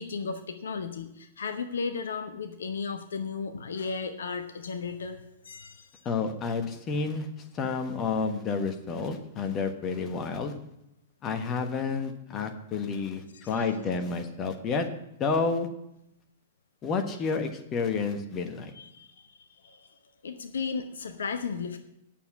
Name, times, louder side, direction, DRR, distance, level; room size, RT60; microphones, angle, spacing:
voice 1, 0.0-6.1 13.3-13.6 18.7-19.9 20.2-21.8, left 5 dB, 65° left, 7 dB, 0.8 m, -35 dB
voice 2, 6.0-7.3 7.5-10.5 11.2-14.9 15.2-15.7 16.8-18.7, left 4 dB, 25° left, 6 dB, 1.2 m, -30 dB
9.1 x 7.0 x 8.5 m, 0.83 s
figure-of-eight pair, 100°, 0 cm